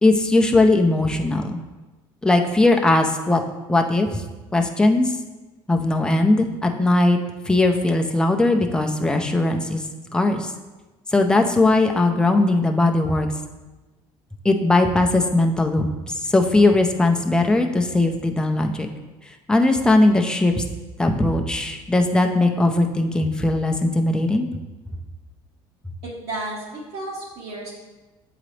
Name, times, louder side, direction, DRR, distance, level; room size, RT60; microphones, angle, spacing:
voice 1, 0.0-1.6 2.2-3.4 3.7-4.2 4.5-5.2 5.7-7.2 7.5-9.8 10.1-10.5 11.1-13.3 14.4-15.9 16.2-18.9 19.5-20.6 21.0-24.5, left 2 dB, 5° left, 3 dB, 0.6 m, -19 dB
voice 2, 26.0-27.7, right 2 dB, 60° right, -7 dB, 1.4 m, -32 dB
7.3 x 3.9 x 3.3 m, 1.2 s
supercardioid pair, 100°, 11 cm